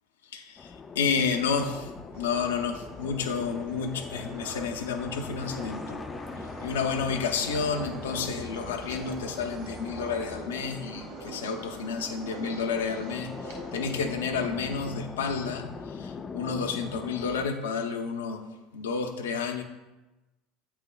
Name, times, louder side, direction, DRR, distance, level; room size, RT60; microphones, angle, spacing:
voice 1, 0.3-6.0 6.6-18.4 18.7-19.6, left 5 dB, 85° left, 6 dB, 0.6 m, -31 dB
sound 1, 0.6-17.5, left 4 dB, 30° left, 0.3 m, -41 dB
sound 2, 2.1-14.1, right 4 dB, 70° right, 1.3 m, -47 dB
sound 3, 5.4-10.4, right 3 dB, 40° right, 1.2 m, -44 dB
8.3 x 5.6 x 2.2 m, 1.1 s
hypercardioid pair, 80°, 0 cm